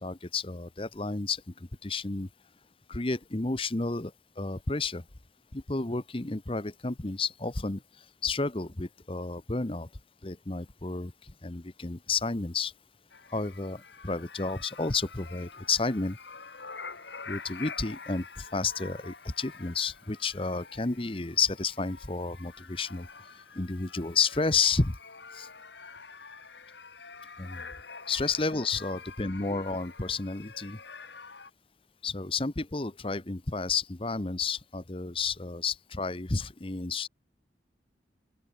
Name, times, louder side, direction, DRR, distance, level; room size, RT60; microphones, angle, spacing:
voice 1, 0.0-2.3 2.9-5.0 5.5-7.8 8.2-9.9 10.2-12.7 13.3-16.2 17.3-23.1 23.5-25.0 25.3-25.5 27.4-27.7 28.1-30.8 32.0-37.1, left 4 dB, 30° left, 1.0 m, -31 dB
sound 1, 13.1-31.5, left 5 dB, 85° left, 5.8 m, -47 dB
open air
head